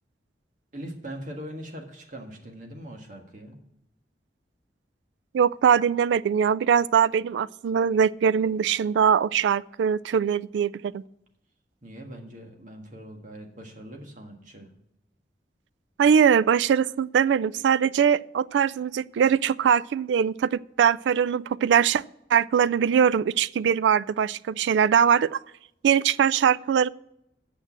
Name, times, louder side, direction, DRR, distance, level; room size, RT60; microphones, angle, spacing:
voice 1, 0.7-3.6 11.8-14.7, equal, 45° right, 1.6 m, -41 dB
voice 2, 5.3-11.0 16.0-22.0 22.3-25.4 25.8-26.9, right 7 dB, 90° right, 0.3 m, -22 dB
8.8 x 6.4 x 7.3 m
head